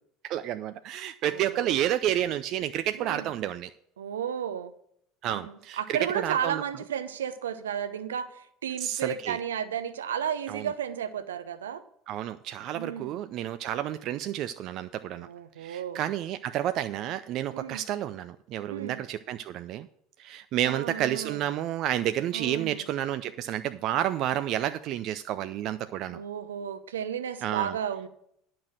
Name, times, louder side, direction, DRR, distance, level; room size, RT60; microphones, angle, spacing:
voice 1, 0.2-3.7 5.2-6.6 8.8-9.4 10.5-10.7 12.1-15.3 15.6-19.9 20.2-26.2 27.4-27.7, right 12 dB, 50° right, 11 dB, 0.4 m, -30 dB
voice 2, 1.3-1.8 3.0-3.3 4.0-4.7 5.2-11.8 12.7-13.2 15.2-16.0 17.5-17.8 18.7-19.0 20.7-21.4 22.3-22.8 26.1-28.1, right 8 dB, 75° right, 11 dB, 0.7 m, -33 dB
10.0 x 6.0 x 6.4 m, 0.70 s
figure-of-eight pair, 70°, 0 cm